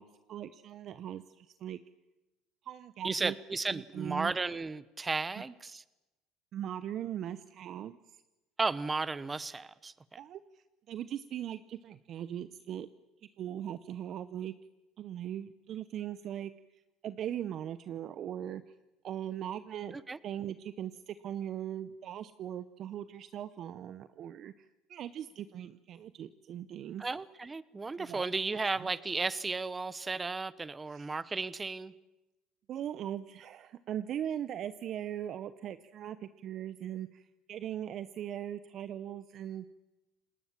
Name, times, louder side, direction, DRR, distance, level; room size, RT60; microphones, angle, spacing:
voice 1, 0.0-1.8 2.6-3.3 3.7-4.3 5.4-5.5 6.5-8.2 10.2-12.9 13.4-14.5 15.0-18.7 19.0-20.0 20.2-27.0 28.0-28.2 28.7-28.9 30.9-31.1 32.7-39.7, right 10 dB, 50° right, 14 dB, 0.8 m, -40 dB
voice 2, 3.0-5.8 8.6-10.2 19.9-20.2 27.0-31.9, right 3 dB, 20° right, 17 dB, 1.0 m, -34 dB
29.0 x 19.5 x 7.5 m, 1.0 s
supercardioid pair, 100°, 0 cm